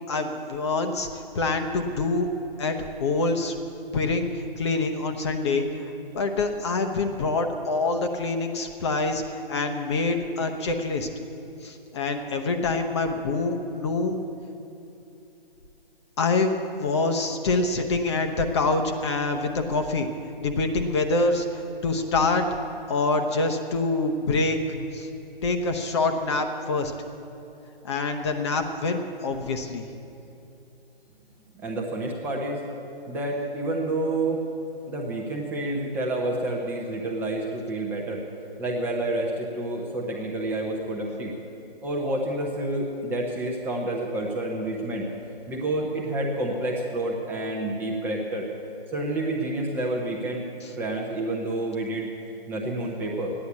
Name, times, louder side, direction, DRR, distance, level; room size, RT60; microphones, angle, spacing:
voice 1, 0.1-2.3 2.6-3.6 3.9-5.6 6.1-11.1 11.6-14.2 16.2-20.1 20.4-22.4 22.9-24.6 24.9-25.1 25.4-26.9 27.8-29.9, left 3 dB, 30° left, 5 dB, 0.9 m, -26 dB
voice 2, 31.5-32.7 33.1-34.4 34.9-38.2 38.6-41.3 41.8-45.1 45.5-48.5 48.9-50.4 50.8-52.1 52.5-53.3, right 1 dB, 5° right, -2 dB, 0.8 m, -29 dB
14.5 x 9.9 x 8.4 m, 2.9 s
figure-of-eight pair, 150°, 30 cm